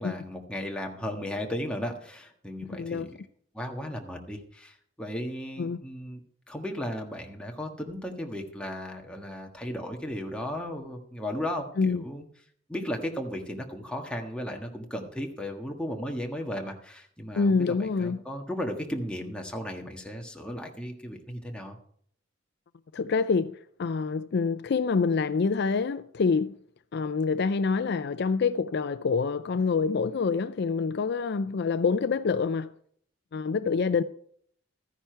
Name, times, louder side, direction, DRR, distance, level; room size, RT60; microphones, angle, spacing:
voice 1, 0.0-3.1 3.5-6.2 6.5-12.2 12.7-21.8, equal, 5° left, 1.5 m, -35 dB
voice 2, 2.6-3.1 5.6-5.8 11.8-12.0 17.4-18.2 22.9-26.6 26.9-32.7 33.3-34.0, left 5 dB, 55° left, 0.4 m, -26 dB
14.0 x 10.0 x 4.5 m
head